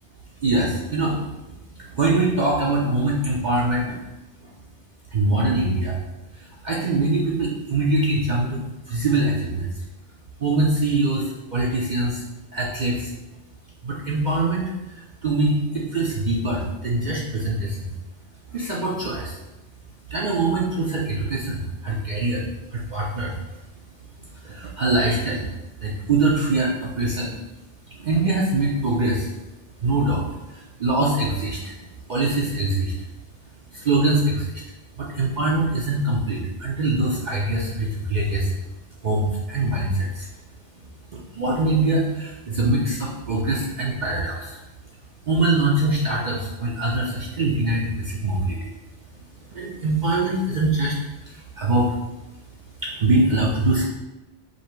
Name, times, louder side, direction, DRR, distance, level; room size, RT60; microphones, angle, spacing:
voice 1, 0.4-1.2 1.8-4.0 5.1-6.0 6.6-9.7 10.4-12.2 12.5-13.1 13.8-14.7 15.2-17.9 18.5-19.4 20.1-23.3 24.4-25.5 25.8-27.3 27.9-29.3 29.8-31.7 32.1-32.9 33.7-34.6 35.0-38.5 39.0-40.3 41.1-44.6 45.3-48.7 49.5-51.0 51.3-51.9 52.8-53.9, right 2 dB, 50° right, -4 dB, 0.6 m, -23 dB
5.3 x 2.0 x 4.4 m, 1.0 s
omnidirectional pair, 1.2 m